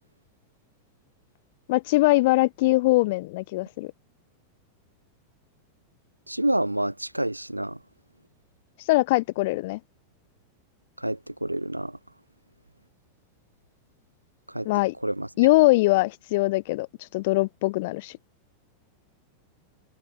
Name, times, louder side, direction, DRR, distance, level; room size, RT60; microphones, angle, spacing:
voice 1, 1.7-3.9 8.9-9.8 14.6-14.9 15.4-16.9 17.1-18.2, left 21 dB, 50° left, 7.6 m, -22 dB
voice 2, 6.3-7.8 11.0-11.9 14.5-14.7 15.0-15.3, right 1 dB, 85° right, 7.6 m, -28 dB
figure-of-eight pair, 90°, 0 cm